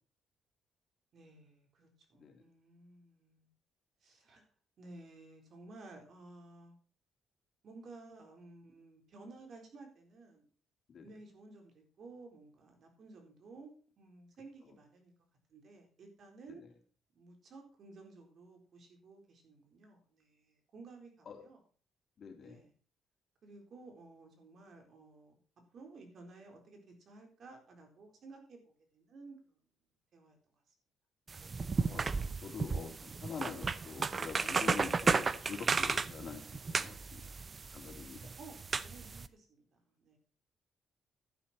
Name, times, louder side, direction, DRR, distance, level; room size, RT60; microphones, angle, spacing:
voice 1, 1.1-3.5 4.0-4.4 4.8-6.7 7.6-10.4 11.0-15.1 15.5-16.6 17.1-21.6 22.4-22.7 23.4-25.4 25.7-28.6 28.9-29.6 30.1-30.4 38.4-40.2, right 3 dB, 60° right, 3 dB, 4.1 m, -55 dB
voice 2, 22.2-22.6 31.8-36.5 36.8-37.3 37.7-38.4, left 6 dB, 55° left, 4 dB, 3.0 m, -45 dB
sound 1, 31.3-39.3, right 4 dB, 35° right, 0.7 m, -34 dB
11.5 x 9.7 x 4.3 m, 0.40 s
cardioid pair, 90°, 0 cm